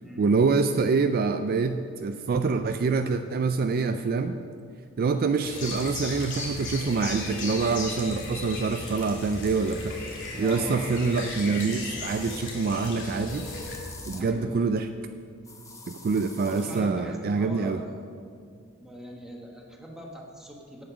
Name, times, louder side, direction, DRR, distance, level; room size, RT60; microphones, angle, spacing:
voice 1, 0.2-4.4 5.0-10.0 10.3-13.5 14.0-14.9 15.9-17.8, right 4 dB, 45° right, 8 dB, 0.4 m, -26 dB
sound 1, 5.4-13.8, left 2 dB, 60° left, 2.1 m, -36 dB
voice 2, 10.3-11.0 14.1-14.7 16.4-18.1 18.8-20.8, equal, ahead, -1 dB, 1.3 m, -41 dB
sound 2, 12.0-12.5 13.3-14.4 15.5-16.9, left 3 dB, 15° left, 0.8 m, -45 dB
8.7 x 8.1 x 6.1 m, 2.3 s
head